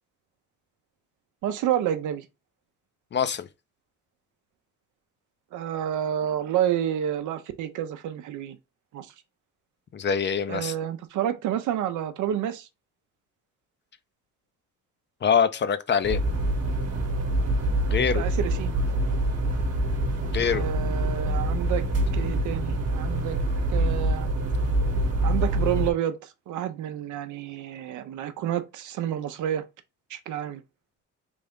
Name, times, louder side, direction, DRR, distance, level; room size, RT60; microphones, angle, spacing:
voice 1, 1.4-2.3 5.5-8.6 8.9-9.1 10.5-12.7 18.1-18.7 20.5-21.8 22.1-23.4 23.7-24.3 25.2-29.6 30.1-30.6, right 10 dB, 75° right, 0.6 m, -29 dB
voice 2, 3.1-3.5 9.9-10.7 15.2-16.2 17.9-18.2 20.3-20.6, left 7 dB, 40° left, 0.5 m, -24 dB
sound 1, 16.0-25.9, right 1 dB, 55° right, 1.0 m, -25 dB
3.4 x 2.6 x 3.5 m
cardioid pair, 90°, 30 cm